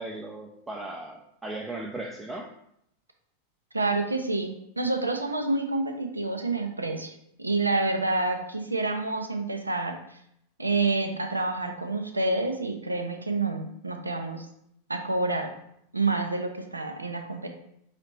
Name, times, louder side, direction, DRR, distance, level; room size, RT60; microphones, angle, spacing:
voice 1, 0.0-2.5, right 2 dB, 10° right, -1 dB, 0.5 m, -37 dB
voice 2, 3.7-7.1 7.4-10.2 10.6-14.5 14.9-15.5 15.9-17.5, right 3 dB, 80° right, 5 dB, 0.4 m, -28 dB
4.9 x 2.7 x 3.1 m, 0.75 s
figure-of-eight pair, 90°, 0 cm